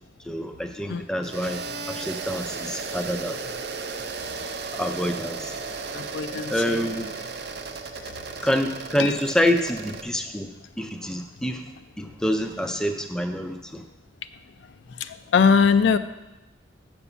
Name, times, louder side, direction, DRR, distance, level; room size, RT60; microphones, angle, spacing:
voice 1, 0.2-3.4 4.7-5.6 6.5-7.1 8.4-10.5 10.8-11.7 12.0-13.8, equal, 5° left, 5 dB, 0.4 m, -27 dB
sound 1, 1.2-10.0, right 4 dB, 55° right, 0.5 m, -35 dB
voice 2, 5.9-6.8 7.9-8.2 9.0-9.2 14.9-16.0, left 6 dB, 65° left, 11 dB, 0.4 m, -22 dB
7.1 x 5.3 x 6.9 m, 1.0 s
head